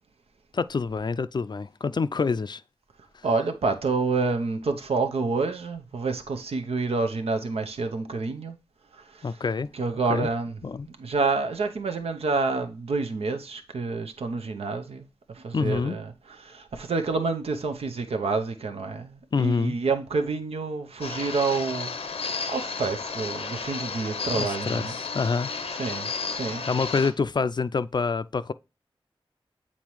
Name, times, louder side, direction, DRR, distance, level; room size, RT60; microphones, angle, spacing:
voice 1, 0.5-2.6 9.2-9.7 10.1-10.3 10.6-10.9 15.5-16.0 19.3-19.8 24.4-24.8 25.1-25.5 26.7-28.5, left 4 dB, 50° left, 0.4 m, -26 dB
voice 2, 3.2-8.6 8.9-9.4 9.7-10.6 10.9-15.0 15.3-25.0 25.7-26.6, right 4 dB, 90° right, 0.7 m, -28 dB
sound 1, 21.0-27.1, left 5 dB, 85° left, 0.7 m, -33 dB
7.3 x 4.2 x 3.1 m
cardioid pair, 40°, 10 cm